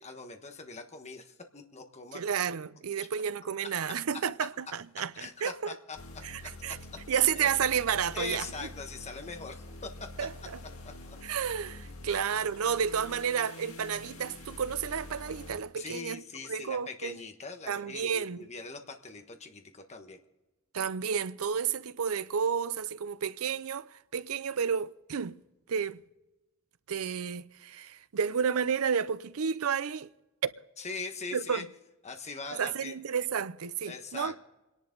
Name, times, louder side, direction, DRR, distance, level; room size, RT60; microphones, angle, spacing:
voice 1, 0.0-2.2 3.0-3.1 3.9-4.0 5.1-6.0 7.1-7.5 8.1-10.1 10.8-10.9 12.1-12.2 12.7-12.8 15.8-20.2 30.8-31.6 32.0-32.9 33.8-34.4, left 4 dB, 30° left, 1.3 m, -42 dB
voice 2, 2.1-5.8 6.2-6.8 7.1-8.7 10.2-10.6 11.2-16.2 16.5-17.2 17.7-18.4 20.7-25.4 25.7-26.0 26.9-30.1 30.4-30.6 31.3-31.7 32.5-34.4, right 7 dB, 90° right, 0.5 m, -31 dB
sound 1, 5.9-15.6, left 2 dB, 80° left, 2.2 m, -46 dB
27.5 x 11.0 x 3.9 m
head